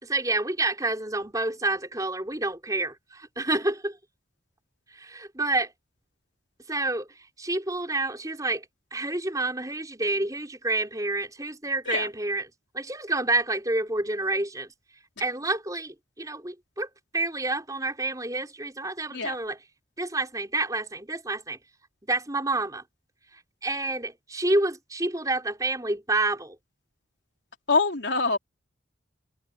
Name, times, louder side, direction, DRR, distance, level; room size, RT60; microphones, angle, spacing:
voice 1, 0.0-4.0 4.9-5.7 6.7-7.1 7.4-8.6 8.9-12.5 12.7-14.7 15.2-16.9 17.1-19.6 20.0-21.6 22.1-22.8 23.6-26.6, right 2 dB, 20° right, 4.7 m, -28 dB
voice 2, 27.7-28.4, left 4 dB, 65° left, 3.6 m, -24 dB
head